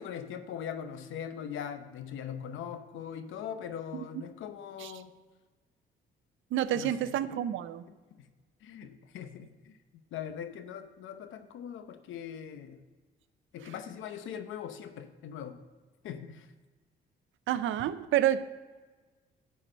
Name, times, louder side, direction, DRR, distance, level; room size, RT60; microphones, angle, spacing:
voice 1, 0.0-5.1 6.7-7.1 8.2-8.3 8.6-12.8 13.5-15.6 16.0-16.5, left 8 dB, 80° left, 9 dB, 0.8 m, -41 dB
voice 2, 6.5-7.8 17.5-18.5, right 11 dB, 75° right, 14 dB, 0.5 m, -29 dB
11.0 x 4.8 x 6.2 m, 1.3 s
cardioid pair, 90°, 20 cm